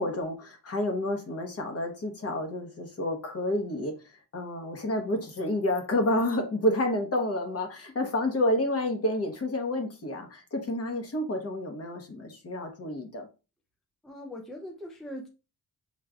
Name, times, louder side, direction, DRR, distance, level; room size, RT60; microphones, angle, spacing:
voice 1, 0.0-3.9 4.3-13.3, left 1 dB, 40° left, 4 dB, 1.0 m, -29 dB
voice 2, 14.0-15.3, left 1 dB, ahead, 1 dB, 0.4 m, -41 dB
6.3 x 3.1 x 2.3 m, 0.32 s
wide cardioid pair, 165°, 39 cm